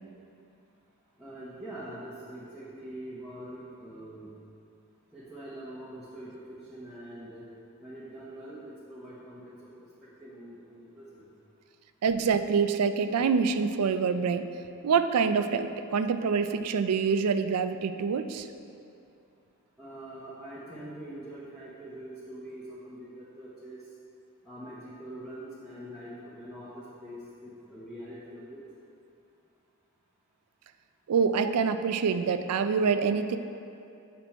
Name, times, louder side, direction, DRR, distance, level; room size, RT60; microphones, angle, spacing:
voice 1, 1.2-4.3 5.1-7.4 7.8-9.7 10.0-11.2 19.8-23.8 24.4-28.6, right 1 dB, 5° right, -11 dB, 1.0 m, -44 dB
voice 2, 12.0-14.5 14.8-18.5 31.1-33.4, right 5 dB, 85° right, 10 dB, 0.4 m, -26 dB
7.6 x 6.1 x 4.4 m, 2.6 s
head